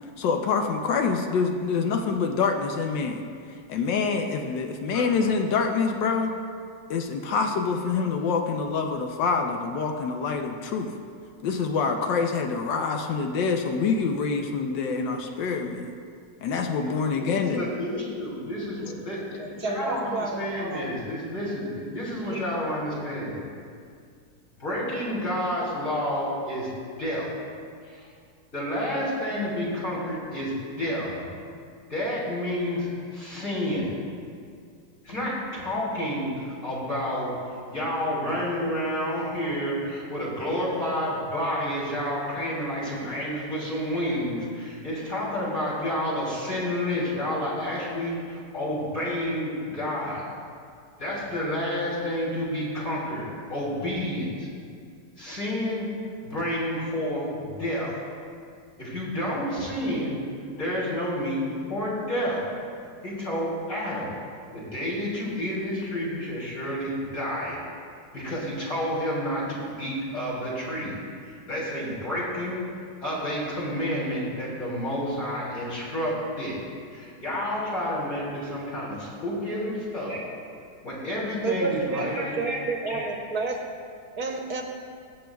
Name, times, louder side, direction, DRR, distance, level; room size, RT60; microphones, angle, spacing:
voice 1, 0.2-3.2 3.5-6.3 6.9-11.0 11.4-15.9 16.4-17.7, left 5 dB, 80° left, 3 dB, 1.4 m, -26 dB
voice 2, 4.9-5.2 16.8-16.9 17.2-23.4 24.6-26.7 27.0-27.3 27.8-28.1 28.5-31.3 31.9-34.0 35.0-37.4 37.7-50.2 51.0-54.5 55.2-55.9 56.2-58.0 58.8-60.2 60.6-62.5 63.0-64.1 64.5-67.6 68.1-71.0 71.2-72.7 73.0-76.6 76.9-80.3 80.8-82.6 82.9-83.1, equal, 45° left, -7 dB, 3.3 m, -30 dB
voice 3, 19.4-20.9 22.3-22.4 79.6-79.7 81.4-83.6 84.2-84.6, right 3 dB, 60° right, 1 dB, 1.3 m, -30 dB
21.0 x 7.7 x 2.3 m, 2.3 s
omnidirectional pair, 1.9 m